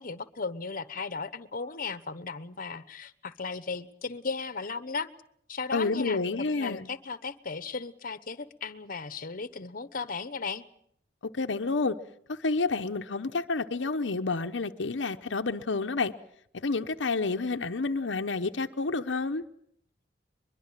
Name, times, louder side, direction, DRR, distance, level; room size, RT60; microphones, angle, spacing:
voice 1, 0.0-5.1 5.5-6.2 6.5-10.6, left 4 dB, 50° left, 14 dB, 1.1 m, -36 dB
voice 2, 5.7-6.9 11.3-12.0 12.3-16.1 16.5-19.4, left 3 dB, 80° left, 6 dB, 0.9 m, -29 dB
22.5 x 22.5 x 7.4 m, 0.70 s
head